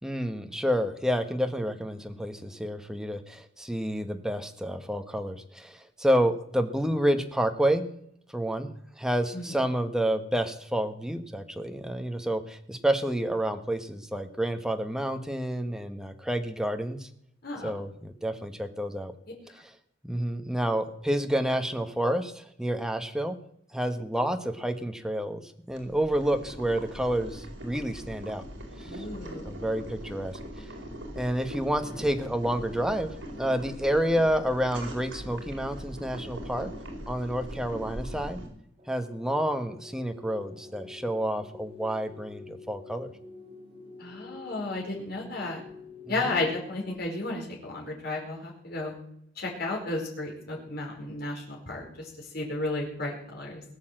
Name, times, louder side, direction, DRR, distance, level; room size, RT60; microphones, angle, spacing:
voice 1, 0.0-7.8 8.3-8.7 9.0-17.1 17.6-19.1 20.0-23.4 23.7-28.4 28.8-29.0 29.4-30.7 31.1-36.7 37.1-38.4 38.9-43.1 46.1-46.2, right 1 dB, 5° right, 7 dB, 1.3 m, -29 dB
Boiling, 25.7-38.5, equal, 70° right, 4.5 m, -41 dB
voice 2, 28.8-29.6 44.0-45.6 46.1-48.9 49.4-53.6, left 2 dB, 55° left, -2 dB, 4.6 m, -33 dB
sound 1, 38.8-46.9, left 4 dB, 30° right, 2.8 m, -48 dB
19.5 x 8.3 x 7.8 m, 0.71 s
head